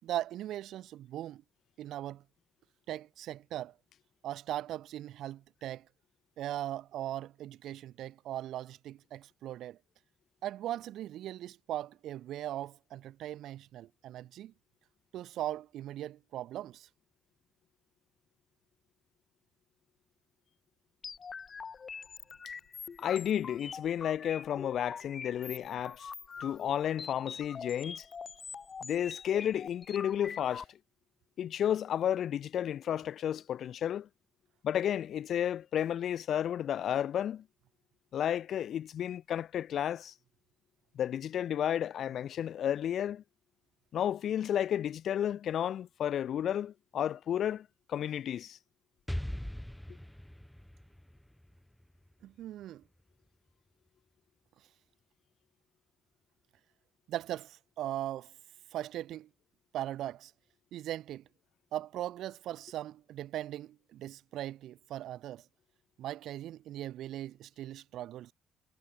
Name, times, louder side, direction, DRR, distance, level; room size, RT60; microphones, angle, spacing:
voice 1, 0.0-1.4 1.8-2.2 2.9-3.7 4.2-5.9 6.4-9.8 10.4-14.5 15.1-16.9 52.2-52.8 57.1-58.3 58.7-59.3 59.7-60.3 60.7-61.2 61.7-65.4 66.0-68.3, right 13 dB, 80° right, 5.5 m, -39 dB
sound 1, 21.0-30.6, left 6 dB, 40° left, 3.6 m, -44 dB
voice 2, 23.0-26.1 26.4-28.1 28.8-30.7 31.4-34.1 34.6-37.4 38.1-40.1 40.9-43.2 43.9-48.6, left 10 dB, 65° left, 0.8 m, -32 dB
Explosion, 49.1-52.8, equal, 5° left, 1.3 m, -41 dB
cardioid pair, 90°, 0 cm